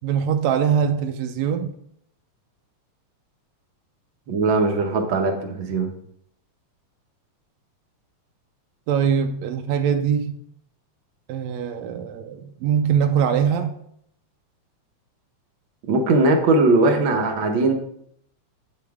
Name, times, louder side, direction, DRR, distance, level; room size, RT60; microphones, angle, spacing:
voice 1, 0.0-1.7 8.9-10.3 11.3-13.7, right 7 dB, 80° right, 5 dB, 1.8 m, -22 dB
voice 2, 4.3-5.9 15.9-17.7, right 3 dB, 65° right, 3 dB, 1.3 m, -19 dB
8.6 x 8.3 x 3.5 m, 0.70 s
omnidirectional pair, 3.3 m